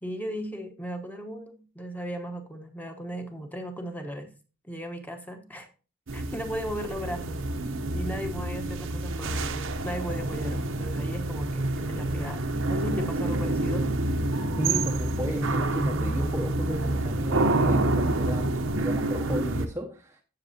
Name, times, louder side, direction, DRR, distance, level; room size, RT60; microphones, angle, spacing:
voice 1, 0.0-4.3 4.6-5.7 6.1-7.4 7.9-13.9, equal, 10° left, 1.0 m, -36 dB
sound 1, 6.1-19.7, right 2 dB, 65° right, 0.8 m, -28 dB
voice 2, 14.6-20.2, equal, 10° right, 0.6 m, -33 dB
14.5 x 6.5 x 2.8 m
head